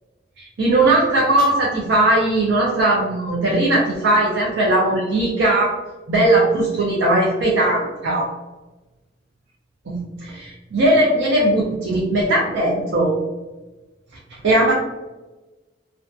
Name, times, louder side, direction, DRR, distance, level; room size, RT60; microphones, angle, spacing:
voice 1, 0.4-5.8 6.1-8.3 9.9-13.1 14.4-14.7, right 1 dB, 80° right, -3 dB, 0.5 m, -18 dB
2.4 x 2.3 x 2.3 m, 1.1 s
head